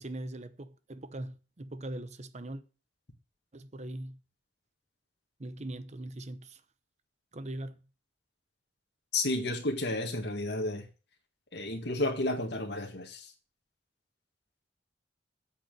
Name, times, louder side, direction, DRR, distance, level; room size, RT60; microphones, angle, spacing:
voice 1, 0.0-2.6 3.5-4.2 5.4-6.6 7.3-7.8, right 1 dB, 40° right, 0.9 m, -41 dB
voice 2, 9.1-10.9 11.5-13.3, left 2 dB, 70° left, 2.0 m, -32 dB
8.0 x 7.2 x 7.8 m
head